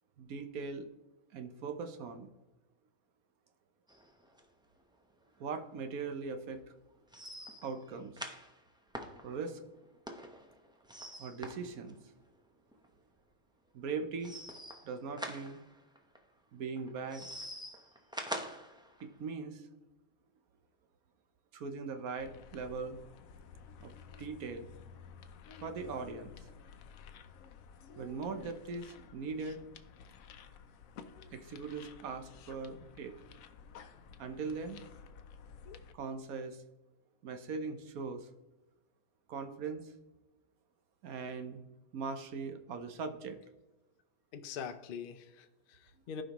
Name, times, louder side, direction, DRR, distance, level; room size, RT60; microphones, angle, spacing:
voice 1, 0.2-0.9 1.3-2.3 5.4-6.6 7.6-8.2 9.2-9.6 11.2-12.0 13.7-14.4 14.8-15.6 16.5-17.3 19.0-19.7 21.5-23.0 23.8-23.9 24.2-24.7 25.6-26.3 28.0-29.6 31.3-33.1 34.2-34.8 35.9-36.6 37.2-38.3 39.3-39.9 41.0-41.6 41.9-43.4, right 4 dB, 75° right, 8 dB, 1.3 m, -40 dB
sound 1, 3.9-4.4 4.8-4.9 5.2-5.3 5.7-5.8 7.1-12.4 12.7-12.9 14.2-16.2 16.8-19.1, equal, 5° right, 0.5 m, -45 dB
sound 2, 22.2-35.9, left 6 dB, 70° left, 1.0 m, -53 dB
voice 2, 44.3-46.2, left 7 dB, 55° left, 9 dB, 0.6 m, -43 dB
15.5 x 5.2 x 3.0 m, 1.1 s
omnidirectional pair, 1.5 m